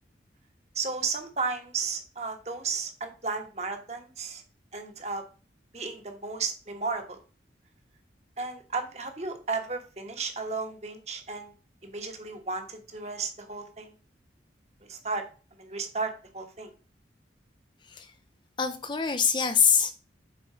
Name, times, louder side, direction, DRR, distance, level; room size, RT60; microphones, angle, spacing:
voice 1, 0.7-4.4 4.7-5.2 5.7-7.2 8.4-11.5 11.8-13.9 14.9-15.2 15.6-16.7, right 4 dB, 35° right, 1.2 m, -34 dB
voice 2, 18.6-19.9, left 6 dB, 25° left, 0.4 m, -24 dB
6.9 x 4.4 x 4.9 m
head